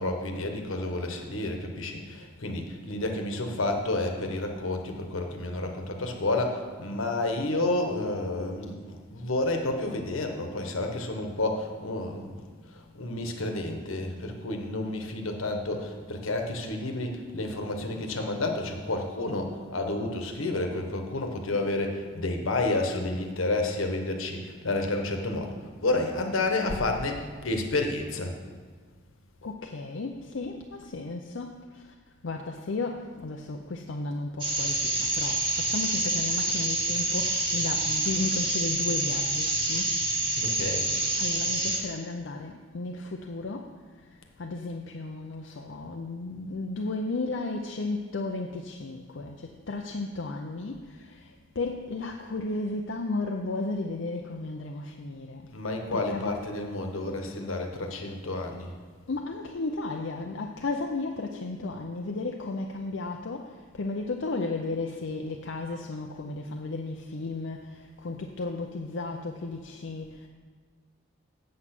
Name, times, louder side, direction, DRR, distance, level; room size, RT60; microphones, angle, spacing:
voice 1, 0.0-28.4 40.4-40.9 55.5-58.8, left 2 dB, 80° left, 4 dB, 1.3 m, -30 dB
voice 2, 29.4-31.8 32.2-39.9 41.2-43.7 44.4-51.3 51.6-55.4 55.9-56.4 59.1-70.3, left 3 dB, 65° left, 2 dB, 0.5 m, -34 dB
sound 1, 34.4-41.8, right 1 dB, 25° right, 1.6 m, -27 dB
8.1 x 7.4 x 6.0 m, 1.5 s
head